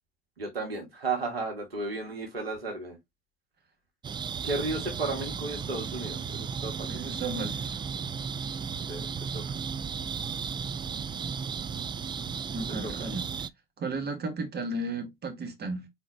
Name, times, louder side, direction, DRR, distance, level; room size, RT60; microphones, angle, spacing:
voice 1, 0.4-3.0 4.4-6.9 8.9-9.6, right 3 dB, 85° right, 1.5 m, -34 dB
sound 1, 4.0-13.5, right 6 dB, 15° right, 0.3 m, -35 dB
voice 2, 6.9-7.8 12.5-13.3 13.8-15.9, right 2 dB, 35° right, 2.0 m, -34 dB
4.3 x 4.1 x 2.8 m
figure-of-eight pair, 60°, 29 cm